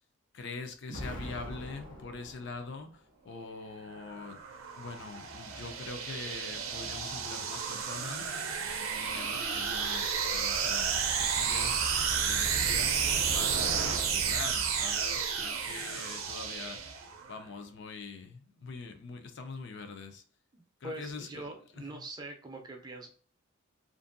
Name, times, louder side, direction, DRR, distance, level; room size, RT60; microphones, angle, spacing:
voice 1, 0.3-4.4 4.7-8.3 8.9-11.8 12.2-13.0 13.3-16.8 17.3-20.2 20.8-21.5 21.9-22.1, left 4 dB, 60° left, 0.4 m, -43 dB
Explosion, 0.9-3.0, equal, 80° left, 1.2 m, -43 dB
sound 1, 3.8-17.3, right 6 dB, 85° right, 0.5 m, -31 dB
voice 2, 20.5-23.1, right 2 dB, 20° right, 0.5 m, -43 dB
2.6 x 2.5 x 2.5 m
head